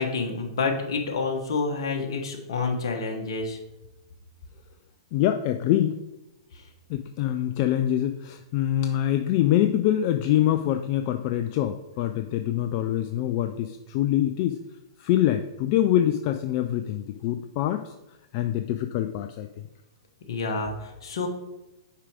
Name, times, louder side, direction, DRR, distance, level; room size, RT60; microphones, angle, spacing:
voice 1, 0.0-3.6 20.3-21.3, left 4 dB, 65° left, 2 dB, 1.3 m, -28 dB
voice 2, 5.1-6.0 6.9-14.6 15.0-17.9 18.3-19.5, left 12 dB, 45° left, 8 dB, 0.4 m, -25 dB
5.6 x 4.8 x 5.0 m, 0.99 s
hypercardioid pair, 110°, 3 cm